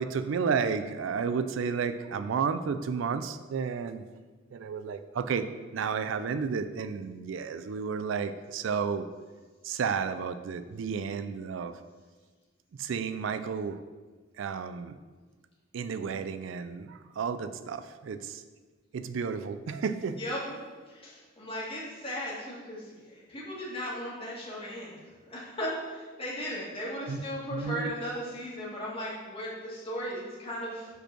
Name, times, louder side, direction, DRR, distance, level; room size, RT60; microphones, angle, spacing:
voice 1, 0.0-4.1 4.5-5.5 5.7-9.1 9.6-11.8 12.7-13.8 14.4-15.0 15.7-18.4 18.9-20.2 27.1-27.2 27.5-28.0, right 6 dB, 70° right, 11 dB, 0.3 m, -32 dB
voice 2, 20.2-20.6 20.9-25.0 25.2-30.9, equal, 30° left, -6 dB, 2.0 m, -37 dB
5.4 x 4.4 x 5.9 m, 1.4 s
head